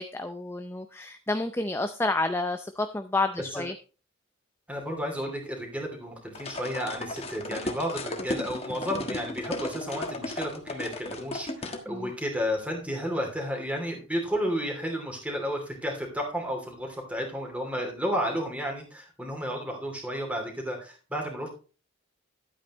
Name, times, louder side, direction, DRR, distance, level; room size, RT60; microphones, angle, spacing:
voice 1, 0.0-3.7 11.9-12.1, left 2 dB, 10° left, 8 dB, 0.5 m, -30 dB
voice 2, 4.7-21.5, equal, 5° right, 1 dB, 2.8 m, -32 dB
sound 1, 6.3-11.8, left 2 dB, 30° left, 1.5 m, -35 dB
12.0 x 8.8 x 3.1 m, 0.34 s
head